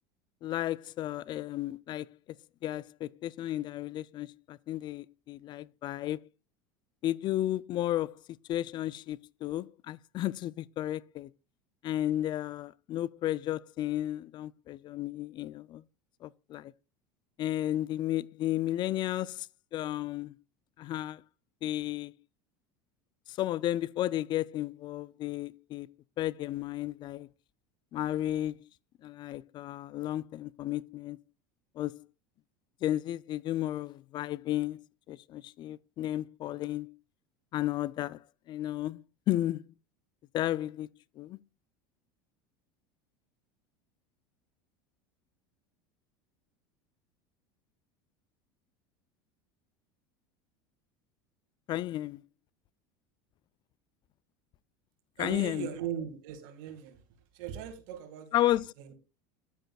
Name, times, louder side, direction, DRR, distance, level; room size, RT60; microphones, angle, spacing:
voice 1, 0.4-2.1 2.6-6.3 7.0-8.2 8.5-11.3 11.8-15.8 16.2-16.7 17.4-20.4 20.8-21.2 21.6-22.1 23.3-25.9 26.2-27.3 27.9-28.7 29.0-31.2 31.8-32.0 32.8-37.0 37.5-39.6 40.3-40.9 41.2-41.4 51.7-52.2 55.2-55.7 58.3-58.7, left 13 dB, 40° left, 0.4 m, -33 dB
voice 2, 55.2-57.0 57.3-58.9, right 9 dB, 70° right, 2.1 m, -39 dB
10.0 x 9.0 x 2.3 m
supercardioid pair, 105°, 11 cm